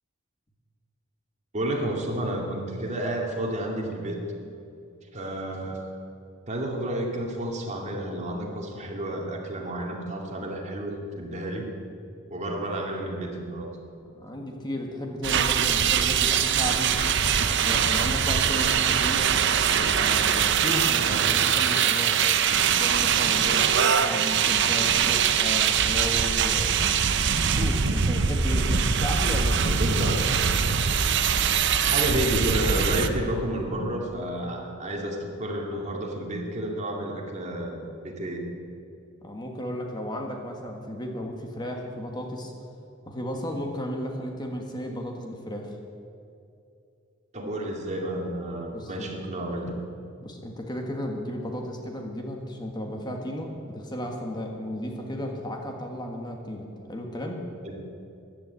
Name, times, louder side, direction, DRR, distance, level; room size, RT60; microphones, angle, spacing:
voice 1, 1.5-4.2 5.1-5.8 6.5-11.7 12.3-13.7 29.8-30.2 31.8-38.4 47.3-49.8 57.6-57.8, right 1 dB, 35° right, 0 dB, 2.4 m, -31 dB
voice 2, 14.1-17.0 17.4-19.3 19.9-22.2 22.8-26.7 27.4-30.1 39.2-42.5 43.0-45.7 48.7-49.1 50.2-57.4, equal, 20° left, 2 dB, 1.6 m, -34 dB
sound 1, 15.2-33.1, right 7 dB, 60° right, 0.8 m, -23 dB
15.0 x 11.0 x 8.3 m, 2.6 s
head